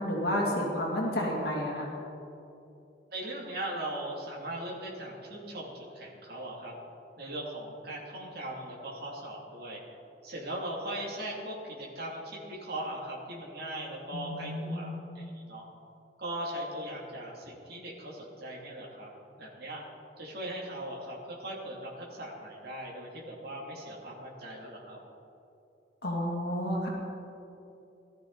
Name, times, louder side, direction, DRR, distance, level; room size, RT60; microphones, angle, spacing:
voice 1, 0.0-1.9 14.1-14.9 26.0-26.9, equal, 60° left, -3 dB, 2.5 m, -31 dB
voice 2, 3.1-6.7 7.2-9.8 10.2-15.7 16.2-19.1 19.4-19.8 20.2-25.0, right 1 dB, 60° right, -3 dB, 2.8 m, -39 dB
18.5 x 13.0 x 4.1 m, 2.8 s
head